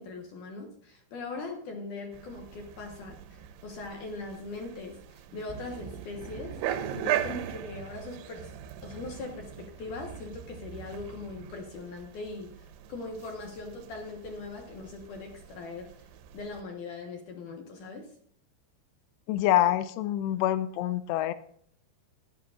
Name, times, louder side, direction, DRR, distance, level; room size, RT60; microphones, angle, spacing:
voice 1, 0.0-8.5 8.8-15.9 16.3-18.1, left 3 dB, 70° left, 2 dB, 2.0 m, -40 dB
sound 1, 2.1-16.6, right 11 dB, 85° right, 3.1 m, -39 dB
voice 2, 19.3-21.3, left 13 dB, 85° left, 13 dB, 2.4 m, -26 dB
14.5 x 11.5 x 2.4 m, 0.64 s
omnidirectional pair, 5.5 m